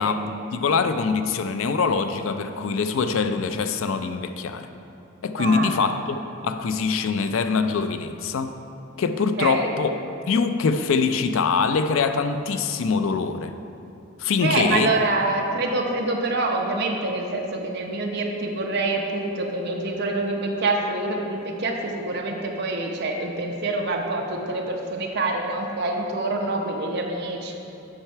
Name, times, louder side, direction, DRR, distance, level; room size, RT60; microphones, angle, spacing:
voice 1, 0.0-4.7 5.2-8.6 9.0-13.5 14.2-14.9, left 5 dB, 65° left, 8 dB, 0.4 m, -24 dB
voice 2, 5.4-5.8 9.4-9.7 14.4-27.5, right 2 dB, 50° right, 1 dB, 0.8 m, -26 dB
8.8 x 5.7 x 4.5 m, 2.8 s
head